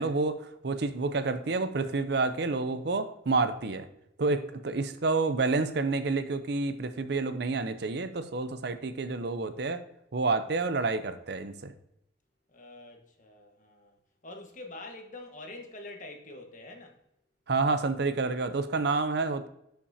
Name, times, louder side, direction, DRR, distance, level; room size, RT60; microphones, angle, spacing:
voice 1, 0.0-3.9 4.2-9.8 10.1-11.7 17.5-19.5, right 3 dB, 55° right, 0.6 m, -29 dB
voice 2, 12.5-14.0 14.2-17.0, left 2 dB, 40° left, 1.3 m, -45 dB
11.0 x 5.8 x 2.7 m
head